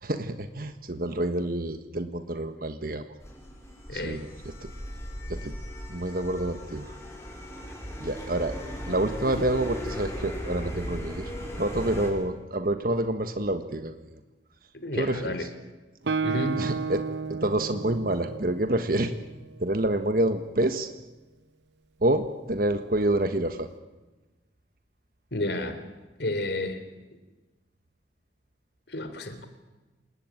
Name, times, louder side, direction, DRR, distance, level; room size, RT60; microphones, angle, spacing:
voice 1, 0.0-3.1 3.9-4.7 5.3-5.6 5.9-6.9 8.0-8.5 8.9-11.3 11.6-14.1 14.9-15.5 16.6-17.0 17.3-19.1 19.6-20.9 22.0-23.7, right 1 dB, 50° right, 8 dB, 1.5 m, -28 dB
sound 1, 3.2-12.1, equal, 15° left, 6.0 m, -37 dB
voice 2, 3.9-4.2 14.8-15.4 16.2-16.7 25.3-25.8 26.2-26.8 28.9-29.5, left 1 dB, 70° left, 9 dB, 3.4 m, -31 dB
Guitar, 16.1-19.7, right 5 dB, 75° right, 0.8 m, -32 dB
28.0 x 20.0 x 9.1 m, 1.2 s
head